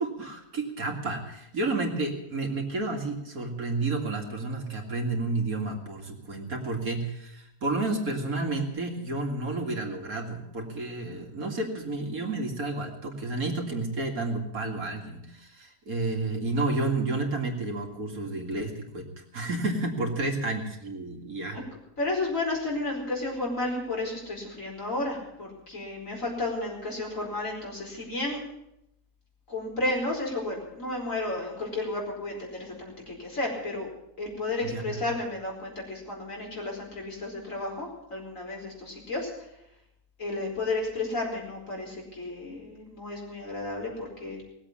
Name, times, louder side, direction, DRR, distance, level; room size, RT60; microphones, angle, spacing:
voice 1, 0.0-19.1 19.3-21.6 34.6-35.0, right 2 dB, 70° right, 2 dB, 2.7 m, -31 dB
voice 2, 22.0-28.4 29.5-33.9 34.2-39.3 40.2-44.4, left 2 dB, 60° left, -2 dB, 5.2 m, -32 dB
19.5 x 8.1 x 8.6 m, 0.83 s
omnidirectional pair, 1.6 m